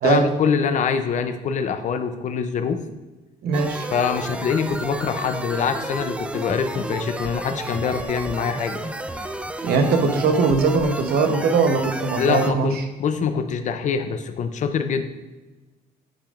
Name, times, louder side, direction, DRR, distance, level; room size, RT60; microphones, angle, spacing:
voice 1, 0.0-2.8 3.9-8.9 12.2-15.1, left 6 dB, 45° left, 8 dB, 0.6 m, -24 dB
voice 2, 3.4-3.9 9.6-12.7, right 4 dB, 65° right, 5 dB, 1.0 m, -20 dB
sound 1, 3.5-12.5, right 1 dB, 5° right, 0.4 m, -32 dB
8.8 x 5.1 x 2.5 m, 1.2 s
cardioid pair, 110°, 17 cm